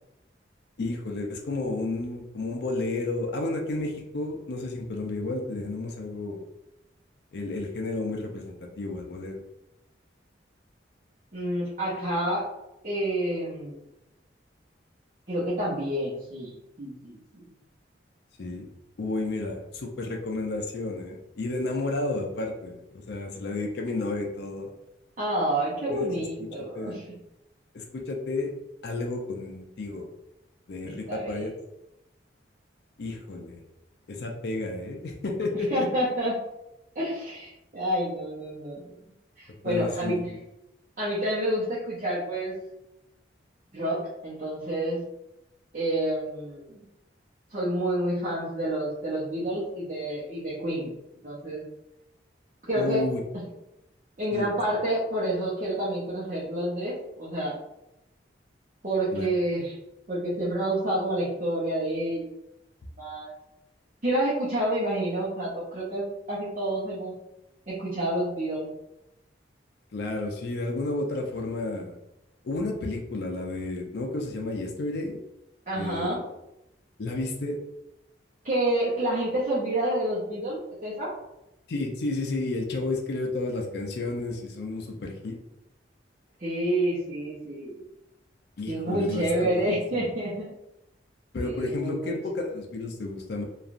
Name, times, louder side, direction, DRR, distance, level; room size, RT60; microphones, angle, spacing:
voice 1, 0.8-6.5 7.3-9.4 18.4-18.7 19.0-24.7 25.9-26.2 26.6-27.0 27.7-28.5 28.8-30.1 30.7-31.5 33.0-33.6 34.1-35.9 39.7-40.4 52.8-53.2 54.3-54.5 59.1-59.3 69.9-72.0 72.4-75.2 75.7-76.2 77.0-77.6 81.7-85.4 88.6-90.1 91.3-93.4, left 2 dB, 60° left, 1 dB, 0.4 m, -32 dB
voice 2, 11.3-12.4 12.8-13.8 15.3-17.5 25.2-27.0 30.8-31.5 35.5-36.4 36.9-38.9 39.4-40.2 41.0-42.5 43.7-45.0 45.7-46.8 47.5-50.9 51.2-51.6 52.7-53.0 54.2-57.6 58.8-59.7 60.1-62.3 63.0-63.3 64.0-67.1 67.7-68.7 75.7-76.2 78.4-81.1 86.4-87.8 88.7-90.5 91.4-92.1, right 1 dB, 40° right, -9 dB, 0.7 m, -29 dB
3.1 x 2.4 x 2.5 m, 0.89 s
head